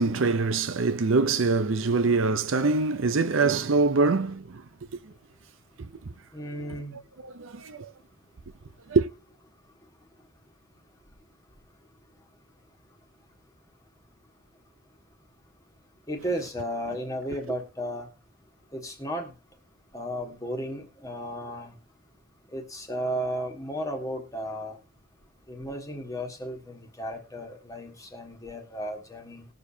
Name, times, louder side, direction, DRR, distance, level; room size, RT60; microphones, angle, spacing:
voice 1, 0.0-4.6 6.1-6.2 7.2-7.9 8.9-9.1, right 3 dB, 70° right, 0.6 m, -24 dB
voice 2, 6.3-7.0 16.1-18.1 18.7-19.3 19.9-21.7 22.5-24.8 25.5-29.5, equal, 15° left, 1.5 m, -34 dB
20.0 x 6.7 x 2.8 m
head